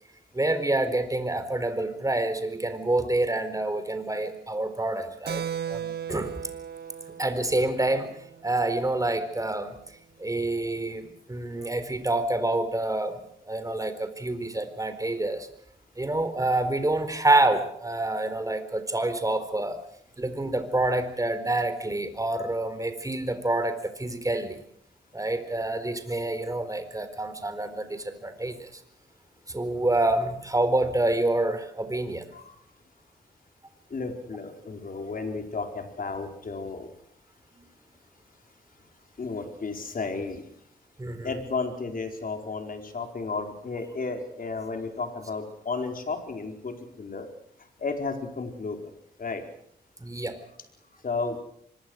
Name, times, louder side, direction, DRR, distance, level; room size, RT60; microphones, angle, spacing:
voice 1, 0.3-6.3 7.2-8.1 8.4-9.8 10.2-15.5 16.0-19.8 20.2-24.6 25.1-28.8 29.5-32.3 41.0-41.5 50.0-50.4, right 2 dB, 20° right, 10 dB, 4.2 m, -27 dB
Keyboard (musical), 5.3-9.3, right 8 dB, 65° right, 1.7 m, -37 dB
voice 2, 33.9-36.9 39.2-40.4 41.2-47.3 47.8-48.9 49.2-49.4 51.0-51.4, left 4 dB, 50° left, 4 dB, 4.8 m, -33 dB
25.0 x 22.0 x 6.5 m, 0.69 s
cardioid pair, 70°, 18 cm